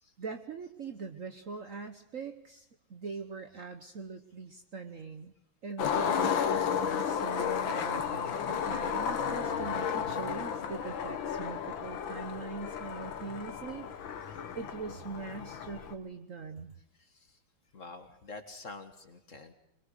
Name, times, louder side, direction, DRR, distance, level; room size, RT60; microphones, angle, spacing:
voice 1, 0.2-5.3 5.6-13.9 14.5-16.8, right 4 dB, 50° right, 7 dB, 1.2 m, -42 dB
Skateboard, 5.8-15.9, left 7 dB, 70° left, 2.0 m, -33 dB
voice 2, 16.9-17.4 17.7-19.5, left 3 dB, 40° left, 8 dB, 1.7 m, -48 dB
22.0 x 22.0 x 6.6 m, 0.78 s
omnidirectional pair, 2.2 m